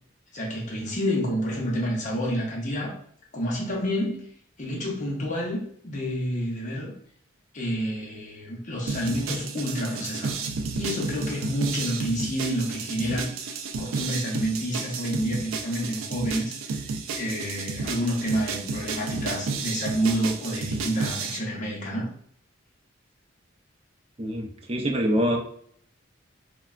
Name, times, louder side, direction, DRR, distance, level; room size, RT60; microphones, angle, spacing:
voice 1, 0.3-2.9 3.3-4.2 4.6-6.9 7.5-13.3 13.8-16.8 17.1-22.1 25.2-25.4, equal, 40° left, -2 dB, 0.7 m, -29 dB
sound 1, 8.9-21.4, right 4 dB, 90° right, 0.3 m, -32 dB
voice 2, 24.2-25.4, equal, 30° right, 1 dB, 0.5 m, -25 dB
3.2 x 2.2 x 2.3 m, 0.62 s
head